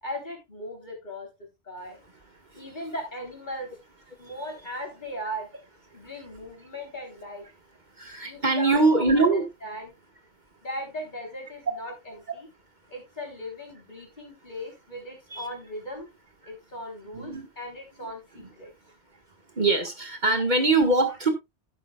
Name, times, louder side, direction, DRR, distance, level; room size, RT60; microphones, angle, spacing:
voice 1, 0.0-2.0 2.5-3.8 4.2-5.5 5.9-7.5 8.2-9.0 9.3-10.0 10.6-12.5 12.9-16.1 16.5-18.7, equal, 45° left, 3.9 m, -38 dB
voice 2, 8.0-9.4 15.3-15.5 17.1-17.5 18.4-18.5 19.5-21.3, right 3 dB, 45° right, 1.7 m, -23 dB
11.5 x 10.0 x 2.3 m
omnidirectional pair, 1.0 m